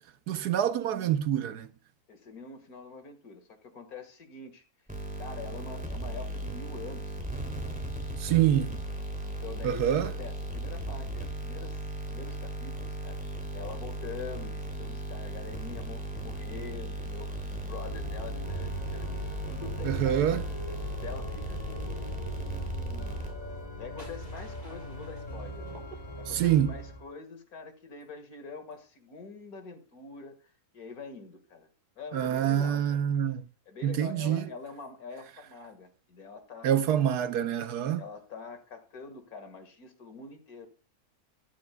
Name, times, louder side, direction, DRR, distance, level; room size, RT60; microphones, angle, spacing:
voice 1, 0.3-1.7 8.2-8.8 9.6-10.1 19.8-20.4 26.3-26.7 32.1-33.4 33.8-34.5 36.6-38.0, right 10 dB, 80° right, 1.3 m, -26 dB
voice 2, 2.1-4.6 5.2-7.2 9.2-20.6 21.0-23.2 23.8-25.8 26.2-31.7 32.0-33.0 33.7-36.8 38.0-40.7, left 5 dB, 70° left, 2.2 m, -45 dB
sound 1, 4.9-23.7, right 1 dB, 5° right, 2.8 m, -37 dB
Organ, 17.8-27.1, right 1 dB, 25° left, 1.3 m, -40 dB
sound 2, 23.4-26.5, left 1 dB, 25° right, 6.3 m, -54 dB
13.5 x 11.5 x 2.2 m
omnidirectional pair, 1.7 m